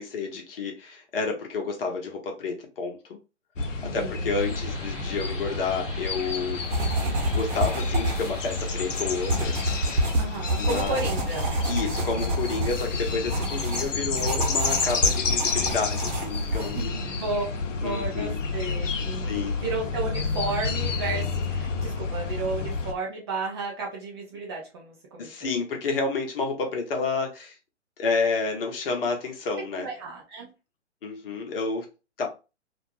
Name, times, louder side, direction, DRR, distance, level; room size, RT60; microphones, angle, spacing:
voice 1, 0.0-3.2 3.9-6.6 7.3-9.6 9.9-10.0 10.5-11.0 11.7-16.9 17.8-18.4 19.2-19.6 25.2-27.5 28.0-29.9 31.0-31.9 32.2-32.3, left 4 dB, 50° left, 0.8 m, -30 dB
sound 1, 3.6-22.9, left 4 dB, 90° left, 0.6 m, -30 dB
voice 2, 3.8-4.3 10.2-11.5 13.4-13.8 16.7-17.4 17.8-25.3 29.7-30.5, right 3 dB, 20° right, 0.4 m, -33 dB
sound 2, 4.3-10.1, left 1 dB, 10° left, 0.9 m, -41 dB
sound 3, 6.6-16.9, equal, 55° right, 1.0 m, -28 dB
2.4 x 2.0 x 3.0 m
figure-of-eight pair, 130°, 36 cm